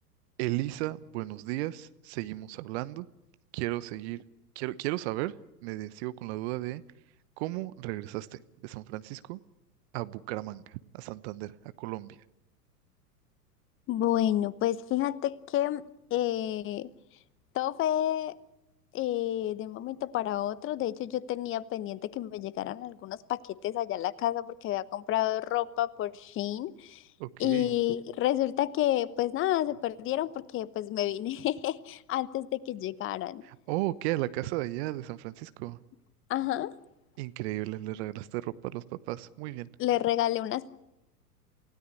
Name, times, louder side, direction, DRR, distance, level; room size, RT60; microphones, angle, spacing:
voice 1, 0.4-3.1 3.5-4.2 4.5-5.3 5.6-6.8 7.4-9.4 9.9-12.2 27.2-27.7 33.4-35.8 37.2-39.7, right 17 dB, 45° right, 16 dB, 1.0 m, -35 dB
voice 2, 13.9-16.9 17.5-18.3 18.9-27.0 27.4-33.4 36.3-36.7 39.8-40.7, left 13 dB, 25° left, 18 dB, 1.0 m, -30 dB
28.5 x 17.0 x 8.4 m, 0.90 s
figure-of-eight pair, 100°, 47 cm